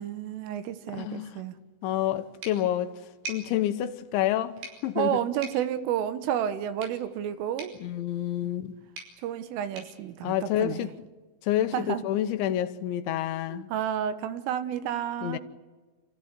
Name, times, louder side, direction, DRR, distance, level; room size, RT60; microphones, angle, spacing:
voice 1, 0.0-1.6 5.0-7.7 9.2-10.9 11.7-12.0 13.5-15.4, right 10 dB, 85° right, 3.9 m, -31 dB
voice 2, 0.9-1.4 1.8-3.0 3.3-4.5 4.8-5.2 7.8-8.7 10.2-10.9 11.4-13.7 15.2-15.4, left 12 dB, 80° left, 3.2 m, -28 dB
sound 1, 2.4-11.1, right 3 dB, 55° right, 6.9 m, -47 dB
28.0 x 15.5 x 9.7 m
omnidirectional pair, 5.6 m